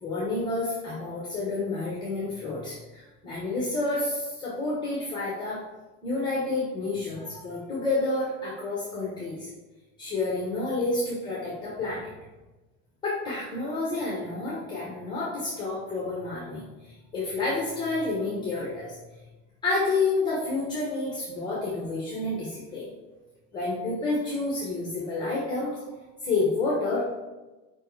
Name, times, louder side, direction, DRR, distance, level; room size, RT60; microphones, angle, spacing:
voice 1, 0.0-5.6 6.0-9.5 10.0-12.1 13.0-19.0 19.6-23.2 23.5-25.8 26.2-27.0, left 3 dB, 10° left, -5 dB, 1.1 m, -29 dB
5.2 x 4.5 x 4.6 m, 1.1 s
cardioid pair, 175°, 34 cm